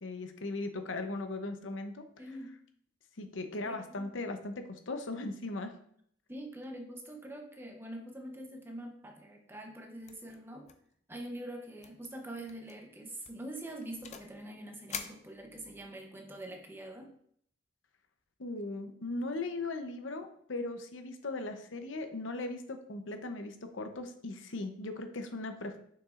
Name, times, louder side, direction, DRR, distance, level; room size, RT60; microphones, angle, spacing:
voice 1, 0.0-2.0 3.2-5.7 18.4-25.8, left 2 dB, 80° left, 7 dB, 0.8 m, -38 dB
voice 2, 2.2-2.6 3.6-4.1 6.3-10.7 11.1-17.1, right 1 dB, 10° right, 3 dB, 0.8 m, -44 dB
sound 1, 10.1-10.4 10.7-10.9 11.2-11.3 11.8-12.1 12.5-12.7 13.2-14.4 14.9-15.9, left 7 dB, 35° left, 0.5 m, -45 dB
6.8 x 6.0 x 2.5 m, 0.65 s
head